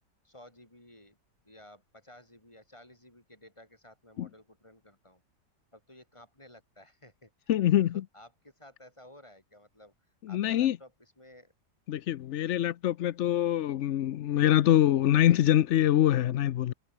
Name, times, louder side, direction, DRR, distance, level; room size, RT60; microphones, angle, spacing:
voice 1, 0.2-1.2 1.4-5.2 5.7-7.5 7.8-9.9 10.3-11.5 12.4-12.6, left 1 dB, 15° left, 5.4 m, -54 dB
voice 2, 7.5-7.9 10.3-10.8 11.9-16.7, left 12 dB, 70° left, 0.7 m, -24 dB
omnidirectional pair, 1.9 m